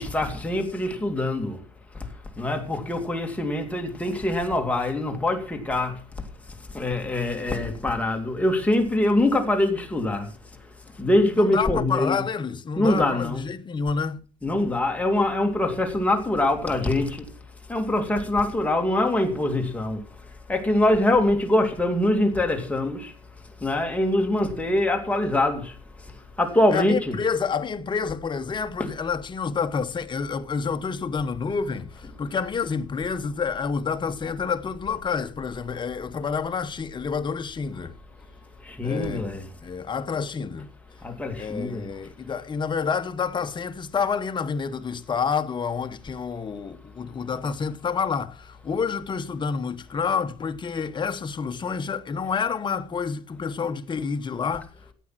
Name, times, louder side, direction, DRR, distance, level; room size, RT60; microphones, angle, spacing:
voice 1, 0.0-1.6 1.9-2.1 2.4-6.0 6.7-10.3 11.0-12.2 12.8-13.5 14.4-17.3 17.7-20.0 20.5-23.1 23.6-25.8 26.0-26.1 26.4-27.2 28.8-28.9 32.0-32.1 38.6-39.5 41.0-41.9, left 1 dB, 10° left, 2.6 m, -24 dB
voice 2, 11.4-14.2 26.7-37.9 38.8-40.7 41.4-54.7, left 5 dB, 30° left, 1.0 m, -28 dB
14.5 x 8.6 x 5.9 m
cardioid pair, 120°, 16 cm